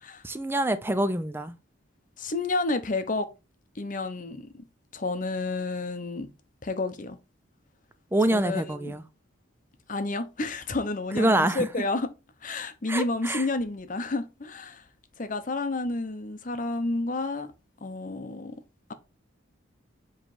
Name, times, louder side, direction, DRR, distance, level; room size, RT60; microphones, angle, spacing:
voice 1, 0.2-1.5 8.1-9.0 11.2-11.7 12.9-13.4, right 1 dB, 10° right, 0.5 m, -25 dB
voice 2, 2.2-3.3 3.7-4.6 4.9-6.3 6.6-7.2 8.3-9.0 9.9-12.1 12.4-14.8 15.2-17.5 17.8-18.6, left 2 dB, 40° left, 0.8 m, -30 dB
7.5 x 3.3 x 4.8 m
head